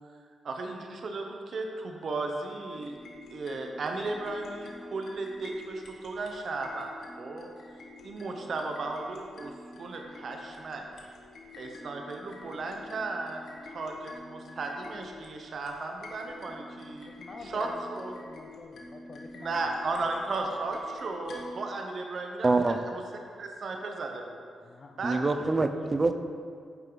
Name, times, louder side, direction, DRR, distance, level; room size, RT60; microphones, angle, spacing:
voice 1, 0.4-3.0 3.3-6.9 7.2-7.5 8.0-9.5 9.8-10.8 11.6-17.1 17.4-18.1 19.4-22.8 23.4-24.4 25.0-25.2, right 3 dB, 50° right, 2 dB, 1.0 m, -35 dB
sound 1, 2.7-21.6, left 2 dB, 70° left, 1.7 m, -48 dB
voice 2, 17.0-19.6 24.6-25.8, left 3 dB, 40° left, 4 dB, 0.5 m, -47 dB
voice 3, 22.4-22.8 25.0-26.1, right 3 dB, 25° right, 8 dB, 0.6 m, -25 dB
10.5 x 9.0 x 4.0 m, 2.2 s
wide cardioid pair, 140°, 0 cm